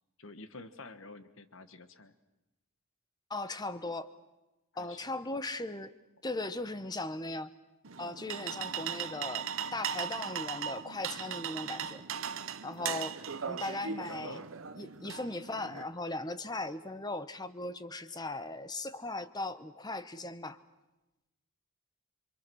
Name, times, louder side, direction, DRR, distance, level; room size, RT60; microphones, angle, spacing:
voice 1, 0.2-2.1 3.5-3.6 4.7-5.0 14.0-14.6, left 3 dB, 65° left, 11 dB, 1.5 m, -49 dB
voice 2, 3.3-4.1 4.8-5.9 6.2-7.5 8.0-12.0 12.6-13.2 13.5-14.4 14.8-20.6, left 2 dB, 20° left, 12 dB, 0.9 m, -38 dB
sound 1, 7.8-15.8, right 7 dB, 65° right, 0.9 m, -38 dB
28.0 x 25.0 x 6.3 m, 1.0 s
head